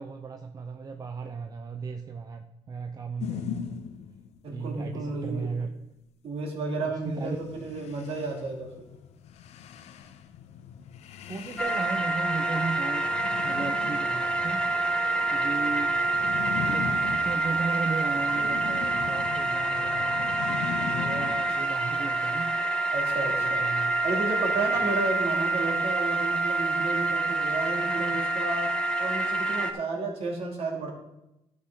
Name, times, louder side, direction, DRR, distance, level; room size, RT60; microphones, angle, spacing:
voice 1, 0.0-3.8 4.5-5.7 6.8-7.4 11.3-13.1 13.4-14.6 15.3-15.9 16.6-22.6 23.4-23.9, right 4 dB, 30° right, 5 dB, 0.7 m, -36 dB
sound 1, 3.2-4.5 7.1-21.5, left 9 dB, 65° left, 0.7 m, -40 dB
voice 2, 4.4-5.5 6.2-8.9 15.3-15.5 22.9-23.6 24.0-30.9, right 2 dB, 60° right, 1 dB, 2.8 m, -32 dB
sound 2, 11.6-29.7, right 2 dB, 10° left, 1.0 m, -27 dB
12.5 x 6.6 x 3.8 m, 0.87 s
cardioid pair, 95°, 12 cm